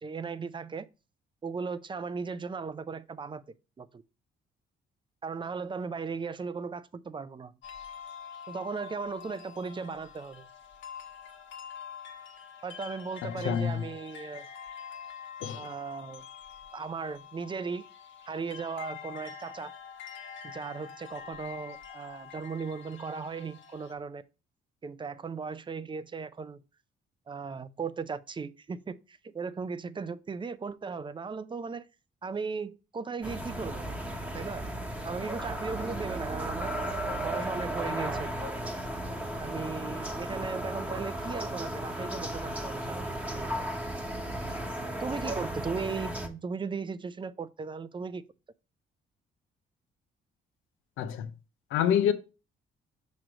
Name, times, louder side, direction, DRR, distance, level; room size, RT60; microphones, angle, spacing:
voice 1, 0.0-0.9 1.4-3.4 3.8-4.0 5.2-7.5 8.5-10.5 12.6-14.5 15.6-16.3 16.7-17.9 18.3-19.7 20.4-24.2 24.8-26.6 27.3-31.9 32.2-33.9 34.3-34.7 35.0-36.7 37.2-38.3 39.4-43.7 45.0-48.2, right 5 dB, 25° right, 0.5 m, -37 dB
sound 1, 7.6-23.9, left 7 dB, 70° left, 1.3 m, -46 dB
voice 2, 13.2-13.8 15.4-15.7 51.0-51.3 51.7-52.1, left 9 dB, 90° left, 0.7 m, -27 dB
sound 2, 33.2-46.3, right 1 dB, 5° right, 1.1 m, -35 dB
6.0 x 3.1 x 4.9 m
cardioid pair, 90°, 20 cm